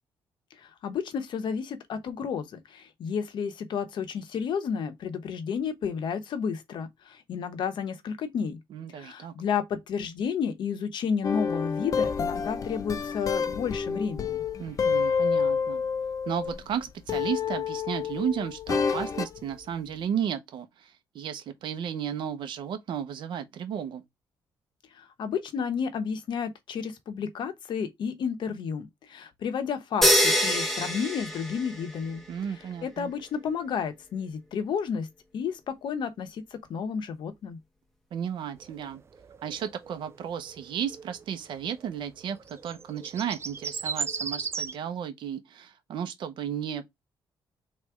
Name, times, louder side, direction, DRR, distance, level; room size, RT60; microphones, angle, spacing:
voice 1, 0.6-8.6 8.9-14.4 24.9-32.2 32.8-35.1 35.3-36.4 36.7-37.6, left 6 dB, 65° left, 1.0 m, -31 dB
voice 2, 8.7-9.3 14.6-15.8 16.3-24.0 32.3-33.1 38.1-39.0 39.4-46.9, right 8 dB, 70° right, 0.8 m, -34 dB
sound 1, 11.2-16.7 17.1-19.4, left 6 dB, 40° left, 0.5 m, -28 dB
sound 2, 30.0-32.2, equal, 5° left, 1.3 m, -24 dB
sound 3, 38.6-40.2 40.4-41.3 41.6-41.9 42.2-44.7, right 5 dB, 30° right, 0.4 m, -36 dB
3.4 x 3.2 x 4.7 m
cardioid pair, 115°, 9 cm